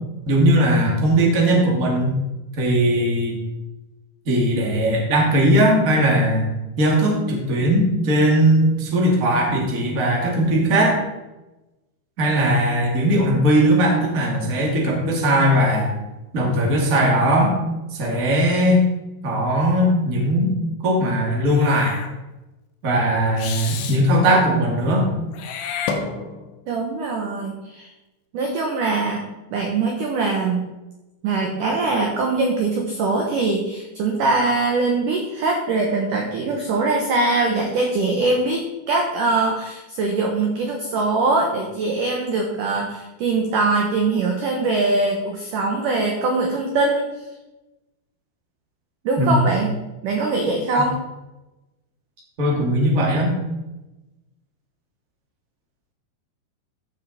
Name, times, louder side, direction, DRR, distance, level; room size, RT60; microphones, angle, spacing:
voice 1, 0.2-2.2 2.6-3.4 4.2-6.5 6.8-11.0 12.2-15.9 16.3-17.5 17.9-18.8 19.2-20.5 20.8-21.9 22.8-25.1 49.2-49.4 52.4-53.3, right 1 dB, 30° right, -1 dB, 1.6 m, -19 dB
Meow / Hiss, 21.5-22.1 23.4-24.0 25.3-26.6, left 5 dB, 80° left, 3.3 m, -30 dB
voice 2, 26.7-27.9 28.3-29.2 29.5-30.6 31.2-47.1 49.1-51.0, right 3 dB, 70° right, 1 dB, 2.0 m, -22 dB
14.5 x 6.3 x 4.2 m, 1.0 s
omnidirectional pair, 5.3 m